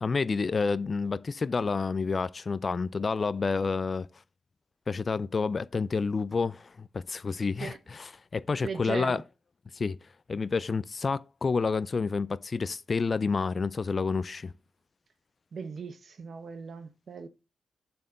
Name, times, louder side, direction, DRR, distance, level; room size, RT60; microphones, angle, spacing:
voice 1, 0.0-4.1 4.9-9.2 9.7-10.0 10.3-14.5, left 4 dB, 40° left, 0.3 m, -29 dB
voice 2, 8.6-9.2 15.5-17.3, right 5 dB, 55° right, 1.0 m, -38 dB
6.9 x 4.4 x 6.6 m
cardioid pair, 95°, 0 cm